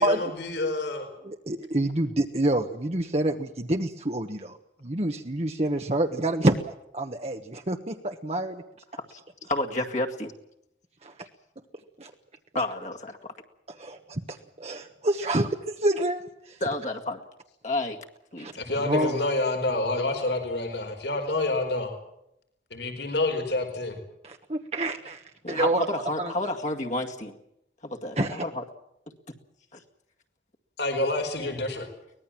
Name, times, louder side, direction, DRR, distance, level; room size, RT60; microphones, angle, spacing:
voice 1, 0.0-1.1 18.6-21.9 22.7-24.0 30.8-31.9, left 2 dB, 75° left, 4 dB, 4.7 m, -28 dB
voice 2, 1.2-4.6 4.8-8.6 11.0-11.2 12.0-12.1 13.7-16.6 18.4-18.5 18.8-19.2 24.2-26.3 28.2-28.4, right 1 dB, 35° right, 4 dB, 1.2 m, -28 dB
voice 3, 9.5-10.3 12.5-13.3 16.6-17.2 17.6-18.0 18.3-18.5 25.4-27.4 27.8-28.6 29.7-29.8, left 2 dB, 40° left, 2 dB, 2.1 m, -30 dB
24.0 x 19.5 x 7.5 m, 0.80 s
head